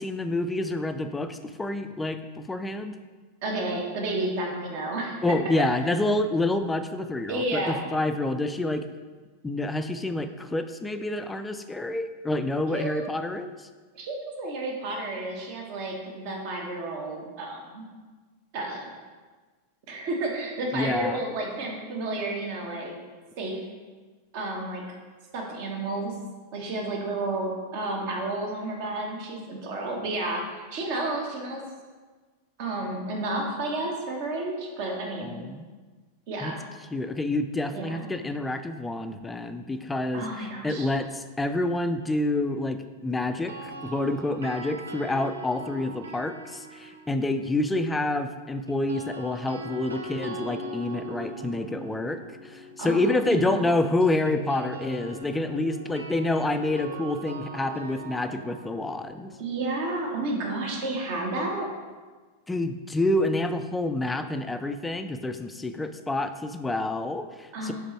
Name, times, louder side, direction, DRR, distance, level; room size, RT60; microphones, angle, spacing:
voice 1, 0.0-3.0 5.2-8.9 9.4-13.7 20.7-21.2 35.2-35.7 36.4-36.5 36.9-40.3 40.6-59.3 62.5-67.7, left 2 dB, 10° left, 9 dB, 0.4 m, -28 dB
voice 2, 3.4-5.2 7.3-7.9 12.7-13.1 13.9-17.9 18.5-18.9 19.9-22.9 23.4-23.6 24.3-24.8 25.3-26.1 26.5-31.6 32.6-35.4 36.3-36.6 37.7-38.0 40.1-40.9 52.8-53.7 59.4-61.7 67.5-67.7, right 2 dB, 45° right, 1 dB, 1.1 m, -31 dB
sound 1, 43.3-47.4 48.7-60.6, right 1 dB, 70° right, 0.5 m, -41 dB
5.1 x 4.1 x 4.4 m, 1.4 s
figure-of-eight pair, 90°, 0 cm